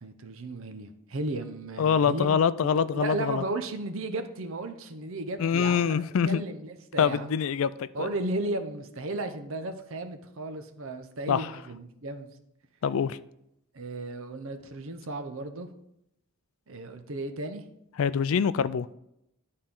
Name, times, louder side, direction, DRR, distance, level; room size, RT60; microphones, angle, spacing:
voice 1, 0.0-2.4 2.7-5.9 6.2-7.3 7.9-12.3 13.7-15.7 16.7-17.6, right 2 dB, 65° right, 0.8 m, -35 dB
voice 2, 1.8-3.4 5.4-6.4 7.0-8.1 11.3-11.5 12.8-13.2 18.0-18.9, left 7 dB, 70° left, 0.3 m, -25 dB
11.5 x 4.3 x 3.7 m
head